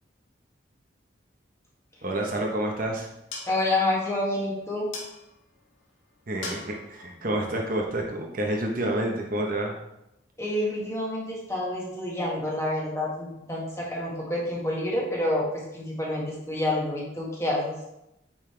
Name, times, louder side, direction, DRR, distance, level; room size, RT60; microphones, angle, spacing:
voice 1, 2.0-3.1 6.3-9.7, right 1 dB, 45° right, 0 dB, 1.0 m, -28 dB
sound 1, 3.1-8.6, left 3 dB, 85° left, 1.4 m, -45 dB
voice 2, 3.5-4.9 10.4-15.5 15.7-17.7, left 1 dB, 15° left, -4 dB, 1.8 m, -28 dB
8.7 x 5.6 x 3.4 m, 0.87 s
head